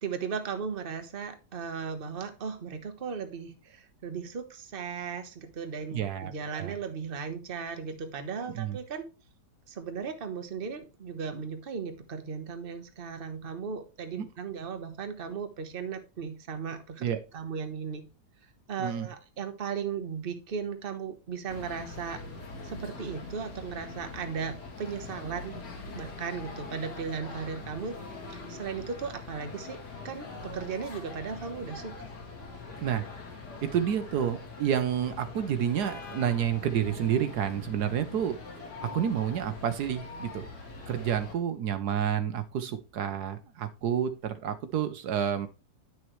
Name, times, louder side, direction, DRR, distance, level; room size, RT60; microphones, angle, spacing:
voice 1, 0.0-9.1 9.7-17.1 17.3-18.0 18.7-22.2 22.6-25.6 25.9-27.9 28.3-29.8 30.0-32.1, right 6 dB, 35° right, 7 dB, 1.2 m, -36 dB
voice 2, 5.9-6.7 8.5-8.8 14.2-14.3 17.0-17.2 18.8-19.1 32.8-33.0 33.6-38.4 38.8-40.4 40.9-45.5, right 9 dB, 75° right, 10 dB, 1.3 m, -29 dB
sound 1, 21.5-41.4, left 3 dB, 75° left, 2.6 m, -43 dB
10.0 x 6.3 x 3.1 m, 0.31 s
omnidirectional pair, 1.8 m